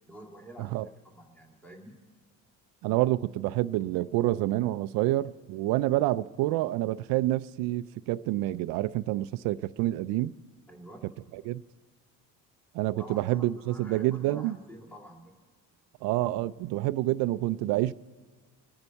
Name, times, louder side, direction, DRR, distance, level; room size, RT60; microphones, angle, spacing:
voice 1, 0.1-2.0 10.7-11.1 13.0-15.4, equal, 5° left, 2.0 m, -48 dB
voice 2, 2.8-10.3 11.3-11.6 12.7-14.5 16.0-17.9, right 16 dB, 65° right, 0.5 m, -28 dB
28.0 x 9.8 x 4.5 m
cardioid pair, 140°, 37 cm